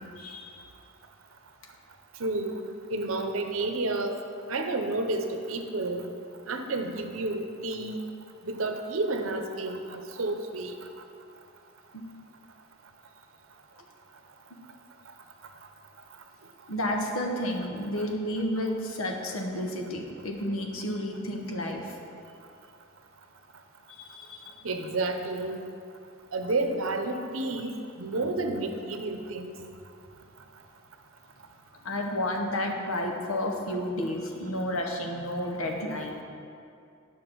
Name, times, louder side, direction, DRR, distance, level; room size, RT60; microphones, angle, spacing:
voice 1, 0.2-0.6 11.9-12.0 16.7-22.0 23.9-24.5 31.8-36.2, left 1 dB, 90° left, 1 dB, 1.2 m, -31 dB
voice 2, 2.2-2.6 2.9-4.2 4.5-6.0 6.5-8.1 8.4-10.8 18.0-18.1 24.6-25.6 26.3-29.5, right 2 dB, 80° right, 6 dB, 0.8 m, -30 dB
11.0 x 5.8 x 4.6 m, 2.5 s
head